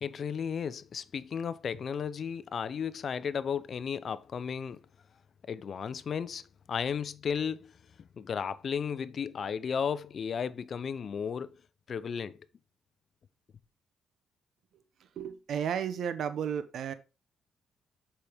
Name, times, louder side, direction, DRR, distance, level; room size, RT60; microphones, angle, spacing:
voice 1, 0.0-4.8 5.5-6.4 6.7-7.7 8.2-11.6 11.9-12.4, left 7 dB, 50° left, 0.6 m, -34 dB
voice 2, 15.2-16.9, right 8 dB, 65° right, 0.8 m, -33 dB
6.9 x 5.6 x 3.5 m
cardioid pair, 90°, 0 cm